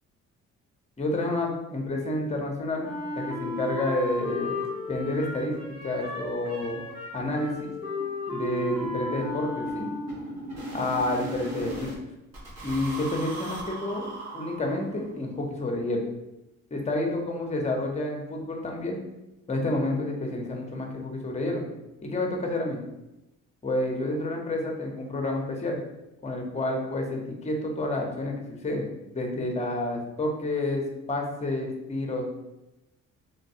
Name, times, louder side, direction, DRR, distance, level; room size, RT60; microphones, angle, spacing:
voice 1, 1.0-4.6 4.9-6.9 7.1-7.7 8.3-9.9 10.7-11.9 12.6-16.0 16.7-19.0 19.5-21.6 22.0-22.8 23.6-25.8 26.2-28.9 29.1-30.8 31.1-32.4, left 2 dB, 20° left, 1 dB, 0.7 m, -29 dB
Wind instrument woodwind instrument, 2.8-10.4, left 2 dB, 20° right, 0.9 m, -34 dB
sound 1, 5.9-6.0 6.3-6.5 6.7-12.0 12.3-15.1, right 1 dB, 55° right, 1.2 m, -39 dB
3.3 x 2.2 x 2.7 m, 0.94 s
cardioid pair, 90°, 30 cm